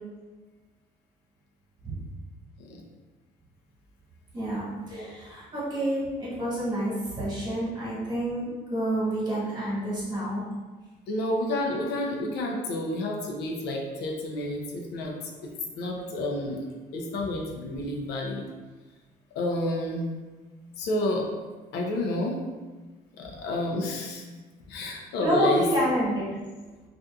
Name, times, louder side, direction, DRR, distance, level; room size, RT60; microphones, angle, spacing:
voice 1, 4.3-10.4 25.2-26.2, equal, 25° right, -7 dB, 1.2 m, -28 dB
voice 2, 11.1-15.1 15.8-16.6 16.9-18.4 19.3-20.1 20.8-21.2 21.7-22.4 23.2-24.2 24.7-25.6, left 1 dB, 80° left, 0 dB, 0.5 m, -30 dB
2.6 x 2.4 x 2.3 m, 1.3 s
cardioid pair, 110°, 17 cm